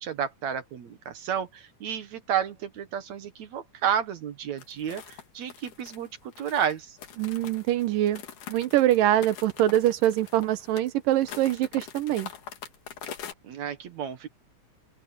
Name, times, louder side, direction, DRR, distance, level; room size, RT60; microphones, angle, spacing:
voice 1, 0.0-7.0 13.4-14.3, right 9 dB, 65° right, 2.3 m, -31 dB
sound 1, 4.6-13.3, left 8 dB, 70° left, 3.5 m, -43 dB
voice 2, 7.2-8.2 8.5-12.3, right 13 dB, 85° right, 2.7 m, -24 dB
open air
omnidirectional pair, 3.8 m